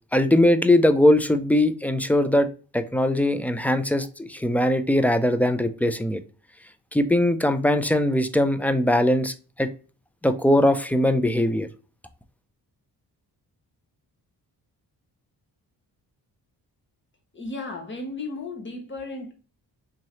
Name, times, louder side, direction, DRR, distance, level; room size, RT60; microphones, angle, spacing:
voice 1, 0.1-2.5 2.7-6.2 6.9-9.7 10.2-11.7, left 1 dB, 5° left, 0.4 m, -21 dB
voice 2, 17.3-19.3, left 2 dB, 30° left, 1.3 m, -34 dB
3.7 x 3.1 x 2.8 m
cardioid pair, 75°, 40 cm